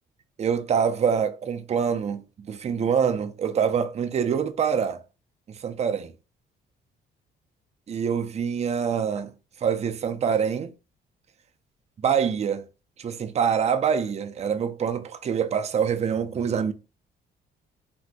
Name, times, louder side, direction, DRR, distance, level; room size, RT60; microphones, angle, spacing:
voice 1, 0.4-5.0 5.5-6.1 7.9-9.3 9.6-10.7 12.0-12.6 13.0-16.7, right 7 dB, 35° right, 0.4 m, -25 dB
2.6 x 2.4 x 3.3 m
cardioid pair, 90°, 20 cm